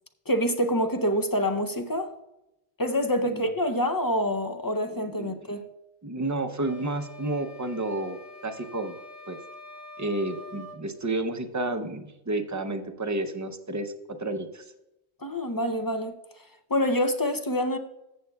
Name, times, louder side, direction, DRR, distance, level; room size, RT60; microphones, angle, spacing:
voice 1, 0.3-2.1 2.8-5.6 15.2-16.2 16.7-17.8, equal, 30° left, 0.4 m, -26 dB
voice 2, 4.9-5.3 6.0-8.9 9.3-9.4 10.0-13.9 14.2-14.7, right 2 dB, 20° right, 0.5 m, -31 dB
sound 1, 6.6-10.8, left 2 dB, 85° left, 1.4 m, -45 dB
14.0 x 7.9 x 2.3 m
omnidirectional pair, 1.1 m